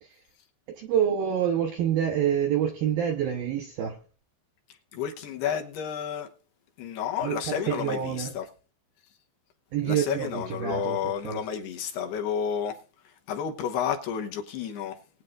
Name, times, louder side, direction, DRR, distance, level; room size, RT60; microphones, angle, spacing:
voice 1, 0.8-4.0 7.2-8.3 9.7-11.4, right 9 dB, 75° right, 2.2 m, -27 dB
voice 2, 4.9-6.3 6.8-8.5 9.8-12.8 13.3-15.0, left 8 dB, 70° left, 2.7 m, -31 dB
21.0 x 9.2 x 2.5 m
omnidirectional pair, 5.6 m